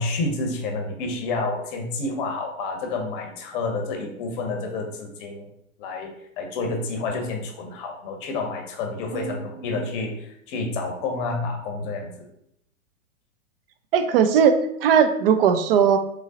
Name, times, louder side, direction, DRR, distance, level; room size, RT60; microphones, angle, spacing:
voice 1, 0.0-5.5 5.8-6.1 6.4-12.1, left 3 dB, 40° left, 3 dB, 0.8 m, -29 dB
voice 2, 13.9-16.0, right 7 dB, 45° right, 9 dB, 0.4 m, -19 dB
3.7 x 3.1 x 2.5 m, 0.75 s
hypercardioid pair, 115°, 41 cm